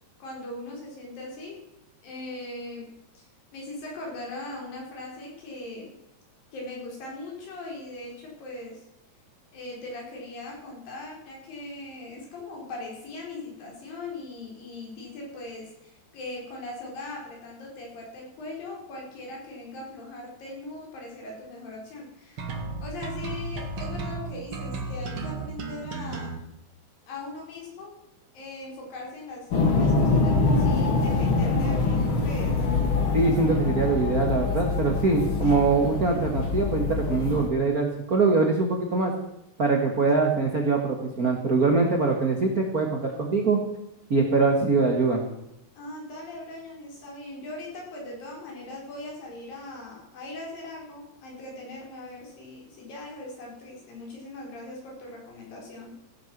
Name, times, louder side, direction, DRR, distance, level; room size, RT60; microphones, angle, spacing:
voice 1, 0.2-1.6 2.0-6.0 6.5-8.9 9.5-22.5 22.8-26.4 27.1-28.0 28.3-32.6 45.8-55.9, left 2 dB, 65° left, -1 dB, 5.8 m, -40 dB
sound 1, 22.4-26.4, right 3 dB, 45° right, 2.0 m, -34 dB
sound 2, 29.5-37.5, left 3 dB, 45° left, 2.0 m, -24 dB
voice 2, 33.1-39.1 39.6-43.6 44.1-45.2, right 4 dB, 80° right, 1 dB, 0.8 m, -23 dB
16.5 x 8.8 x 6.0 m, 0.85 s
omnidirectional pair, 4.4 m